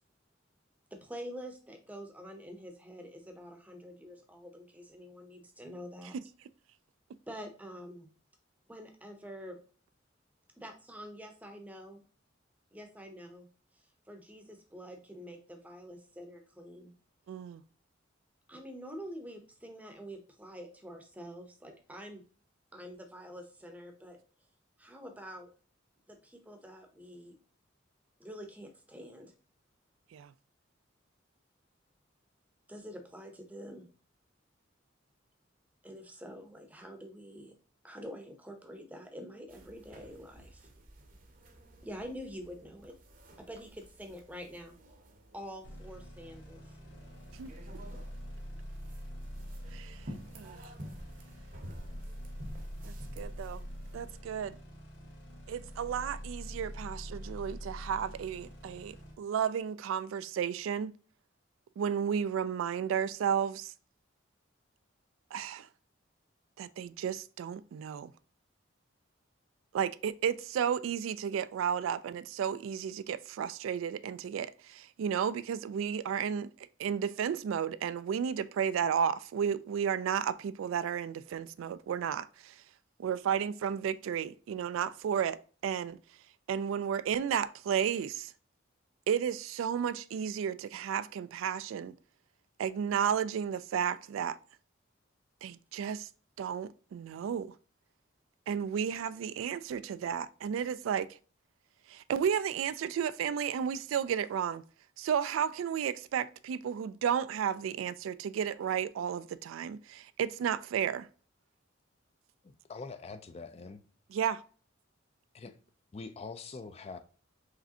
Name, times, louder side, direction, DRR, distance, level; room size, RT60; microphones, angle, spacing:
voice 1, 0.9-6.2 7.3-8.1 8.7-9.6 10.6-12.0 12.7-13.5 13.7-16.9 18.5-22.2 22.7-24.2 24.8-25.5 26.1-27.4 28.2-29.3 32.7-33.9 35.8-37.5 37.8-40.7 41.8-42.9 43.4-44.7 45.3-46.8, equal, 10° right, 0.7 m, -46 dB
voice 2, 17.3-17.6 30.1-30.3 47.4-47.5 49.7-50.0 50.4-50.7 52.8-53.6 53.9-54.6 55.5-60.9 61.8-63.7 65.3-65.7 66.6-68.1 69.7-82.6 83.0-86.0 86.5-88.3 89.1-91.9 92.6-94.4 95.4-96.1 96.4-97.5 98.5-101.1 101.9-104.6 105.0-111.1 114.1-114.4, right 8 dB, 85° right, 0.3 m, -33 dB
sound 1, 39.5-54.1, equal, 45° right, 0.7 m, -51 dB
sound 2, 45.6-59.1, equal, 60° left, 1.6 m, -45 dB
voice 3, 112.4-113.8 115.3-115.5 115.9-117.0, left 4 dB, 30° left, 0.3 m, -44 dB
4.8 x 3.2 x 2.7 m
head